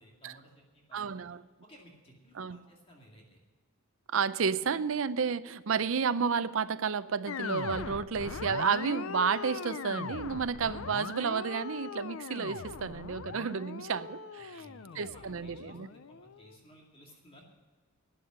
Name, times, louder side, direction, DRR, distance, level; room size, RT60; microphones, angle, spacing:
voice 1, 0.0-1.3 1.6-3.4 14.4-17.4, equal, 25° left, -1 dB, 2.2 m, -57 dB
voice 2, 0.9-1.4 2.4-2.6 4.1-14.6 15.0-15.9, right 6 dB, 70° right, 14 dB, 0.5 m, -31 dB
sound 1, 7.3-16.6, left 6 dB, 70° left, 0.5 m, -40 dB
12.5 x 8.8 x 7.9 m, 1.3 s
head